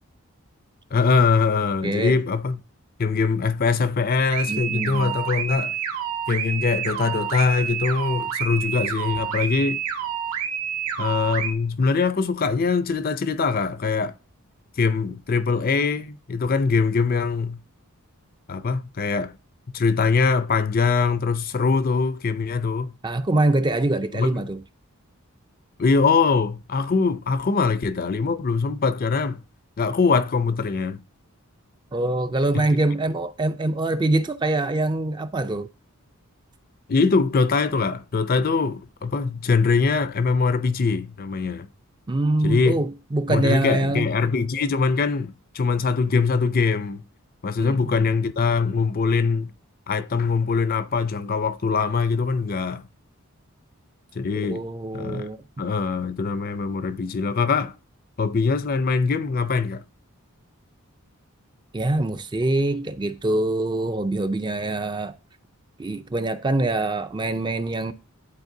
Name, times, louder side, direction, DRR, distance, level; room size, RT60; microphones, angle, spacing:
voice 1, 0.9-2.6 3.0-5.8 6.3-9.8 11.0-14.1 14.8-17.6 18.5-19.3 19.7-22.9 24.1-24.5 25.8-29.4 29.8-31.0 32.5-32.6 36.9-41.7 42.4-42.8 43.3-47.0 47.4-49.5 49.9-52.8 54.2-54.6 54.9-55.3 55.6-57.7 58.2-59.8, left 4 dB, 40° left, 0.4 m, -22 dB
voice 2, 1.8-2.2 4.5-5.1 23.0-24.6 31.9-35.7 42.1-44.1 47.6-48.1 54.3-55.4 61.7-65.2 65.8-67.9, right 2 dB, 20° right, 0.4 m, -24 dB
sound 1, 4.3-11.5, right 8 dB, 85° right, 1.6 m, -28 dB
10.5 x 4.2 x 2.7 m
head